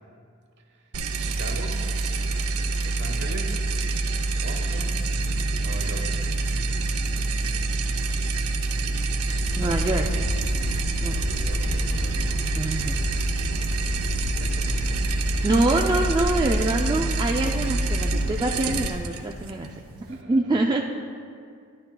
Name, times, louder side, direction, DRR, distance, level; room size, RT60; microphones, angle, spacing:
sound 1, 0.9-20.2, right 3 dB, 85° right, 0.6 m, -27 dB
voice 1, 1.2-1.8 2.8-3.6 4.3-5.1 5.6-6.2 11.1-12.4 13.9-15.1 20.1-20.5, right 2 dB, 55° right, 3 dB, 1.1 m, -40 dB
sound 2, 4.4-16.0, equal, 40° left, 2.0 m, -41 dB
sound 3, 9.0-18.9, left 3 dB, 65° left, 0.4 m, -33 dB
voice 2, 9.6-10.1 11.0-11.2 12.5-13.2 15.4-19.7 20.1-20.8, right 2 dB, 20° right, 0 dB, 0.3 m, -25 dB
11.5 x 11.0 x 2.2 m, 2.2 s
head